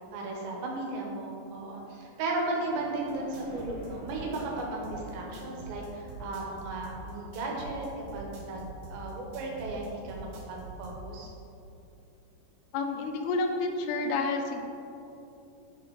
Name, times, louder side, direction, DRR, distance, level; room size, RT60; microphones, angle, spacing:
voice 1, 0.1-11.3, right 2 dB, 90° right, -1 dB, 3.3 m, -35 dB
sound 1, 2.5-6.6, left 2 dB, 65° left, 2.0 m, -49 dB
sound 2, 3.1-11.0, right 4 dB, 70° right, 2.7 m, -44 dB
voice 2, 12.7-14.6, left 3 dB, 85° left, 3 dB, 2.8 m, -29 dB
7.0 x 4.3 x 4.5 m, 2.8 s
omnidirectional pair, 4.9 m